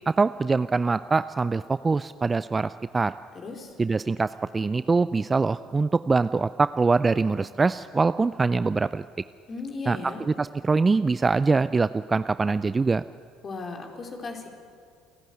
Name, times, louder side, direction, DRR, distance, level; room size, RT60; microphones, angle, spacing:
voice 1, 0.1-3.1 3.8-9.0 9.9-13.0, right 4 dB, 25° right, 14 dB, 0.4 m, -24 dB
voice 2, 3.3-3.7 9.5-10.2 13.4-14.5, left 3 dB, 40° left, 2 dB, 4.4 m, -36 dB
29.5 x 11.5 x 9.5 m, 2.2 s
hypercardioid pair, 75°, 0 cm